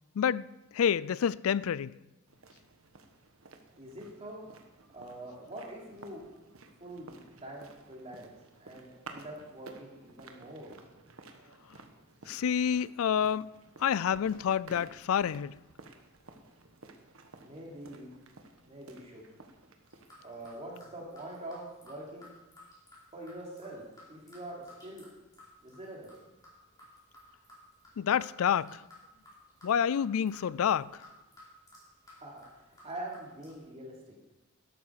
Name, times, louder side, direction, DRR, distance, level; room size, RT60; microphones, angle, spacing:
voice 1, 0.2-0.5 0.7-1.9 12.3-13.5 13.8-15.6 28.0-28.8 29.6-31.1, left 8 dB, 70° left, 0.4 m, -28 dB
sound 1, 2.3-20.8, right 3 dB, 70° right, 1.3 m, -54 dB
voice 2, 3.7-4.4 4.9-6.2 6.8-8.3 8.6-10.7 17.4-18.1 18.7-19.2 20.2-22.3 23.1-25.1 25.6-26.2 32.1-34.2, right 1 dB, 30° right, 3.2 m, -44 dB
sound 2, 19.8-33.6, left 1 dB, 20° left, 4.6 m, -57 dB
12.5 x 12.5 x 4.8 m
head